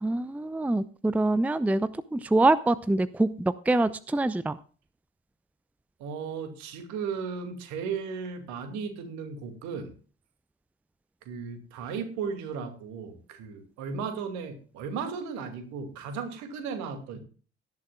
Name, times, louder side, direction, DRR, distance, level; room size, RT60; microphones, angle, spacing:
voice 1, 0.0-4.6, right 2 dB, 5° right, 17 dB, 0.6 m, -25 dB
voice 2, 6.0-9.9 11.3-17.2, right 5 dB, 65° right, 7 dB, 2.3 m, -35 dB
17.5 x 11.0 x 2.3 m, 0.38 s
figure-of-eight pair, 50°, 31 cm